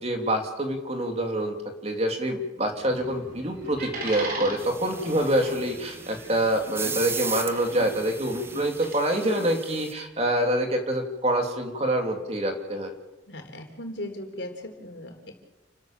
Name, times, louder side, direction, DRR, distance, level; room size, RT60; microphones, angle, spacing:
voice 1, 0.0-1.6 1.8-12.9, right 1 dB, 35° right, 4 dB, 2.8 m, -26 dB
sound 1, 2.6-8.9, right 2 dB, 50° right, 4.7 m, -40 dB
sound 2, 2.9-3.2 3.6-3.9 4.4-4.6 5.1-5.4 6.8-7.2 7.7-8.1 8.5-8.9 9.4-9.7, equal, 80° right, 4.3 m, -43 dB
sound 3, 4.6-9.9, right 4 dB, 15° right, 0.8 m, -37 dB
voice 2, 13.3-15.3, left 1 dB, 75° left, 4 dB, 3.8 m, -38 dB
29.5 x 12.5 x 7.5 m, 1.0 s
head